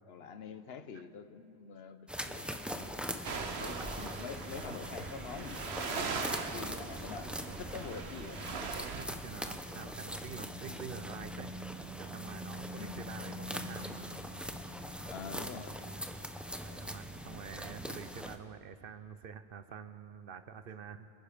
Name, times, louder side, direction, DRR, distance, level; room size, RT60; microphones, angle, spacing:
voice 1, 0.1-3.0 3.6-8.4 10.6-10.7 12.8-13.0 15.1-15.8, left 6 dB, 75° left, 10 dB, 1.0 m, -46 dB
sound 1, 2.1-18.4, equal, ahead, 0.6 m, -42 dB
sound 2, 3.2-9.1, right 5 dB, 90° right, 1.2 m, -40 dB
voice 2, 8.5-11.5 12.0-14.1 16.6-21.1, right 7 dB, 65° right, 12 dB, 0.8 m, -47 dB
26.5 x 10.5 x 5.1 m, 2.6 s
omnidirectional pair, 1.0 m